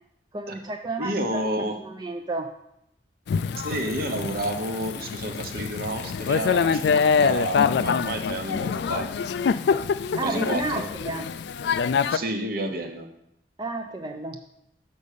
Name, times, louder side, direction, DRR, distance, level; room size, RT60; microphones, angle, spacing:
voice 1, 0.3-1.4 1.8-2.5 10.1-11.3 13.6-14.4, right 2 dB, 25° right, 4 dB, 0.4 m, -31 dB
voice 2, 1.0-1.8 3.6-9.1 10.2-10.9 12.1-13.1, right 1 dB, 55° right, 5 dB, 1.0 m, -30 dB
Thunder / Rain, 3.3-12.2, left 6 dB, 65° left, 0.3 m, -25 dB
6.3 x 5.3 x 6.6 m, 0.79 s
head